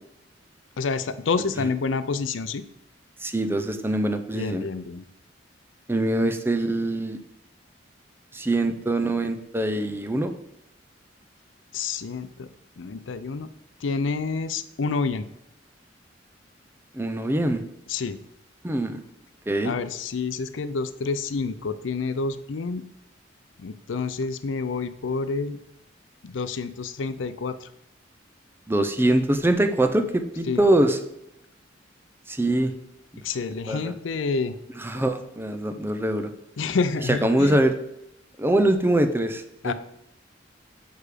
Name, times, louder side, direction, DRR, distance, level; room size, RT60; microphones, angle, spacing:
voice 1, 0.8-2.6 4.3-5.0 11.7-12.5 12.8-13.5 13.8-15.2 17.9-18.2 19.6-22.8 23.6-25.6 26.2-27.7 30.5-30.6 33.2-34.6 34.9-35.1 36.6-37.6 39.6-39.7, left 4 dB, 85° left, 12 dB, 0.5 m, -28 dB
voice 2, 3.2-4.6 5.9-7.2 8.3-10.3 16.9-17.6 18.6-19.0 19.5-19.7 28.7-31.0 32.3-32.7 33.7-33.9 34.8-36.3 37.1-37.7 38.4-39.7, right 1 dB, 10° right, 7 dB, 0.6 m, -23 dB
6.8 x 4.9 x 5.0 m, 0.80 s
head